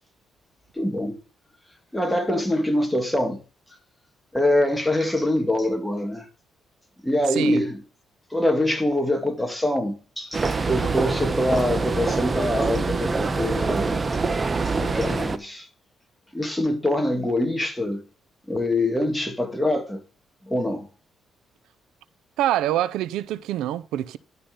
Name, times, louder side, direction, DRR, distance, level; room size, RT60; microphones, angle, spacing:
voice 1, 0.7-1.2 1.9-3.4 4.3-6.3 7.0-7.8 8.3-14.0 14.7-15.7 16.3-18.0 18.5-20.0 20.4-20.9, left 1 dB, 5° left, 2.2 m, -24 dB
voice 2, 7.3-7.6 22.4-24.2, right 13 dB, 90° right, 0.5 m, -25 dB
sound 1, 10.3-15.4, right 4 dB, 30° right, 1.0 m, -25 dB
12.0 x 5.7 x 5.2 m
cardioid pair, 90°, 0 cm